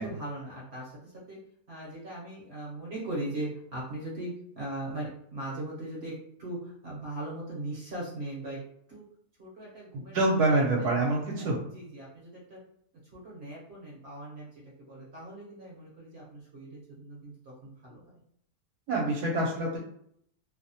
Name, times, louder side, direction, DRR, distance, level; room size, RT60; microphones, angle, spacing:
voice 1, 0.0-1.4 1.7-8.6 8.9-9.0 9.4-11.0 11.3-12.6 13.1-18.1, right 1 dB, 55° right, -5 dB, 0.8 m, -39 dB
voice 2, 10.1-11.6 18.9-19.8, right 2 dB, 80° right, -3 dB, 1.1 m, -26 dB
2.7 x 2.1 x 2.6 m, 0.69 s
omnidirectional pair, 1.7 m